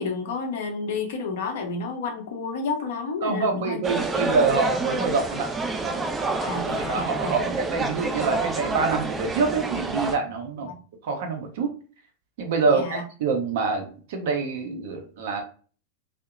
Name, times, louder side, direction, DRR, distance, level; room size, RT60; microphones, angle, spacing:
voice 1, 0.0-3.8 4.1-4.2 6.4-7.8 10.7-10.8 12.7-13.0, left 4 dB, 55° left, 3 dB, 0.6 m, -31 dB
voice 2, 3.2-5.5 5.8-6.1 6.9-10.7 11.0-11.7 12.4-15.4, right 4 dB, 55° right, 4 dB, 0.6 m, -26 dB
sound 1, 3.8-10.2, right 3 dB, 15° right, 0.4 m, -28 dB
2.7 x 2.1 x 2.3 m, 0.40 s
figure-of-eight pair, 90°, 0 cm